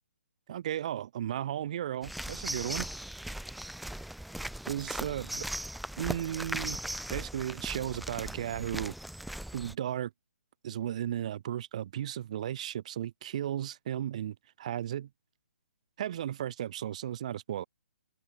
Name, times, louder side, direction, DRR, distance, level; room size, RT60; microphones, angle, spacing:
voice 1, 0.5-2.9 4.7-5.4 6.0-6.8 7.1-8.9 9.5-10.1 10.6-15.1 16.0-17.6, right 11 dB, 30° right, 0.7 m, -35 dB
sound 1, 2.0-9.7, right 1 dB, ahead, 1.1 m, -38 dB
hypercardioid pair, 175°, 8 cm